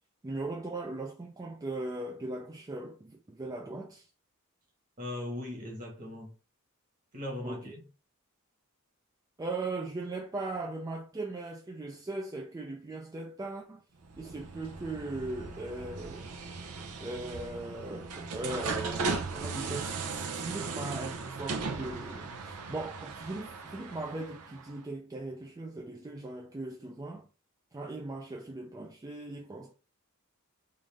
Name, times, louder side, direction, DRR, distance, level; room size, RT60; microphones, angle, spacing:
voice 1, 0.2-4.1 7.4-7.6 9.4-13.8 14.2-16.3 17.0-27.3 27.7-29.7, right 2 dB, 15° right, 0.3 m, -39 dB
voice 2, 5.0-6.3 7.1-7.8, left 1 dB, 40° right, 1.4 m, -39 dB
sound 1, 14.0-24.7, right 4 dB, 90° right, 0.6 m, -37 dB
3.8 x 2.5 x 3.4 m
head